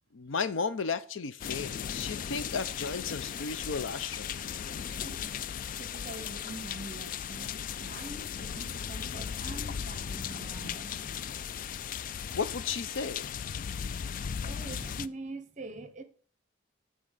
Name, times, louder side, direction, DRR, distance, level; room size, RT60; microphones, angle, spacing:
voice 1, 0.1-4.4 12.3-13.3, left 5 dB, 80° left, 0.6 m, -34 dB
sound 1, 1.4-15.1, left 8 dB, 45° left, 0.3 m, -37 dB
voice 2, 4.8-5.3 5.8-11.4 13.8-16.0, right 2 dB, 40° right, 1.0 m, -45 dB
8.8 x 3.7 x 6.7 m
head